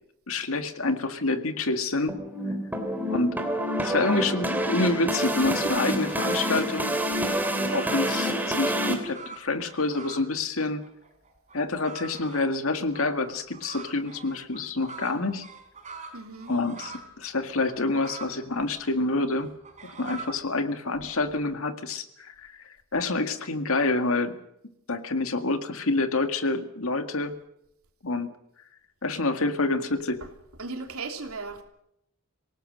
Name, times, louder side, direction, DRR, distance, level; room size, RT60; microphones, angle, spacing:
voice 1, 0.3-2.2 3.1-3.4 3.7-6.9 7.7-10.8 11.5-15.5 16.5-19.5 19.8-22.5 22.9-24.4 24.9-27.3 28.0-28.3 29.0-30.2, left 2 dB, 75° left, 1.9 m, -27 dB
sound 1, 2.1-8.9, equal, 10° right, 3.3 m, -27 dB
sound 2, 6.0-6.5 6.8-10.3 10.6-17.1 17.4-20.5, right 4 dB, 35° right, 4.1 m, -44 dB
voice 2, 16.1-16.5 30.6-31.6, right 3 dB, 90° right, 3.1 m, -36 dB
27.0 x 18.0 x 6.6 m
head